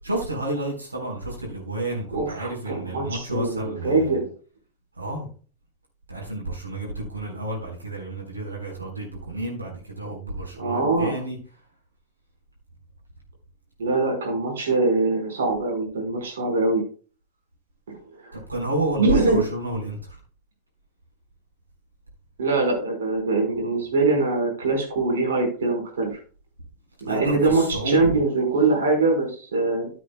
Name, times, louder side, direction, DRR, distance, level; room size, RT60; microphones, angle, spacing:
voice 1, 0.0-4.2 5.0-5.3 6.1-11.4 18.3-20.2 27.1-28.0, right 1 dB, 80° right, -1 dB, 3.8 m, -30 dB
voice 2, 2.1-4.3 10.5-11.1 13.8-16.8 18.2-18.4 19.0-19.4 22.4-26.2 27.0-29.9, right 3 dB, 65° right, 1 dB, 4.5 m, -23 dB
14.0 x 8.2 x 2.2 m, 0.38 s
figure-of-eight pair, 90°, 0 cm